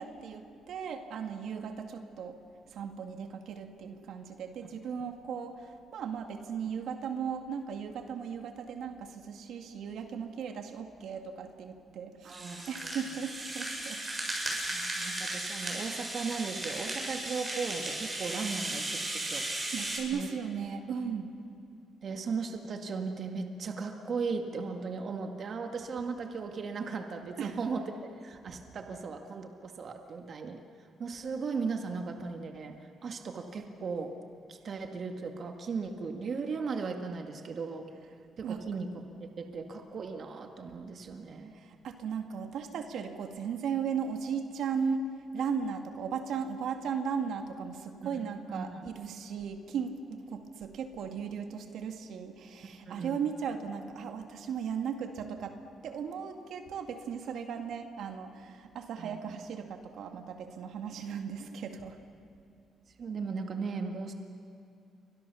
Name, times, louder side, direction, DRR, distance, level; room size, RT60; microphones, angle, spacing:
voice 1, 0.0-2.4 2.7-14.0 18.4-18.5 19.7-21.3 27.4-27.6 38.4-38.6 41.5-55.6 55.8-62.0, right 6 dB, 75° right, 5 dB, 2.2 m, -37 dB
voice 2, 12.2-12.9 14.7-19.4 20.1-20.3 22.0-34.1 34.5-37.9 38.4-41.5 48.1-48.2 48.5-48.8 52.9-53.2 59.0-59.4 63.0-64.1, right 4 dB, 50° right, 5 dB, 2.0 m, -37 dB
Rattle (instrument), 12.3-20.0, right 2 dB, 25° right, 8.0 m, -36 dB
29.5 x 24.5 x 7.1 m, 2.7 s
cardioid pair, 90°, 0 cm